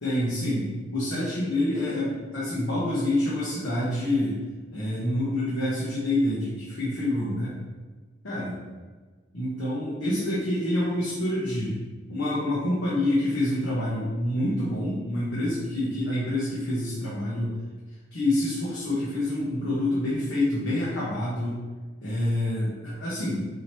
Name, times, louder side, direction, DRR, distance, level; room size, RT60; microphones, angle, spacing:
voice 1, 0.0-4.4 4.7-7.5 8.2-8.6 9.3-11.8 12.1-17.5 18.1-21.6 22.0-23.5, left 1 dB, 85° left, -8 dB, 1.1 m, -27 dB
4.9 x 2.9 x 3.0 m, 1.3 s
head